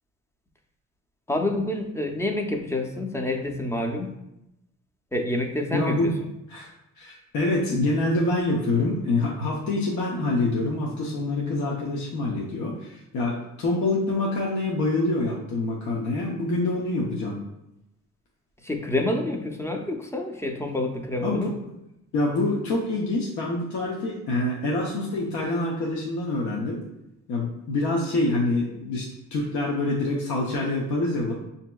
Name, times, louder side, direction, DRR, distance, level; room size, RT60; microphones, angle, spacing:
voice 1, 1.3-4.1 5.1-6.1 18.6-21.5, left 1 dB, 10° left, 3 dB, 0.5 m, -28 dB
voice 2, 5.7-6.1 6.5-6.7 7.0-17.4 21.2-21.5 22.1-26.8 27.3-31.3, left 2 dB, 70° left, -3 dB, 0.7 m, -26 dB
5.9 x 2.7 x 2.2 m, 0.87 s
cardioid pair, 90°, 30 cm